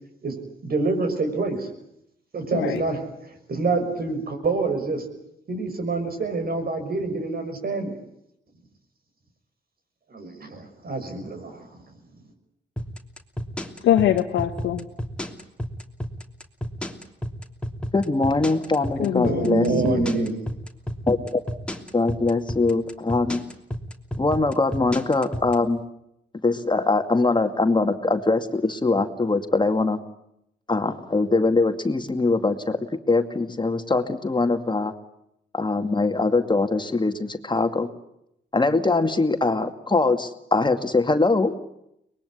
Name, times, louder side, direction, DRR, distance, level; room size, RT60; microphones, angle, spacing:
voice 1, 0.6-1.7 2.3-5.0 5.5-8.0 10.1-11.8 19.2-20.4, right 3 dB, 55° right, 6 dB, 6.4 m, -26 dB
sound 1, 12.8-25.5, equal, 5° left, 3.1 m, -31 dB
voice 2, 13.8-14.9 19.0-19.9, left 11 dB, 85° left, 4 dB, 1.1 m, -23 dB
voice 3, 17.9-20.0 21.1-21.4 21.9-23.4 24.2-25.8 26.4-30.0 30.7-32.8 33.1-34.9 35.5-37.9 38.5-41.5, left 3 dB, 25° left, 7 dB, 2.3 m, -22 dB
23.5 x 21.0 x 10.0 m, 0.80 s
supercardioid pair, 60°, 18 cm